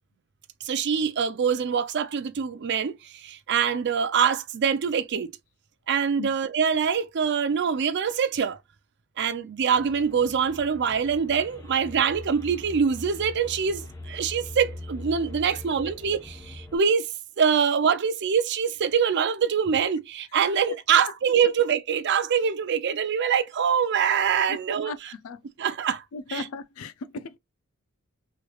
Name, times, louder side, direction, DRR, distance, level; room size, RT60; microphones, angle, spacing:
voice 1, 0.6-5.3 5.9-8.6 9.2-17.1 17.4-25.1 25.6-26.0 26.3-26.5, right 7 dB, 55° right, 0.4 m, -24 dB
sound 1, 9.7-16.8, left 1 dB, 15° left, 0.8 m, -42 dB
voice 2, 26.1-27.4, left 4 dB, 80° left, 0.4 m, -36 dB
3.2 x 3.1 x 2.3 m
head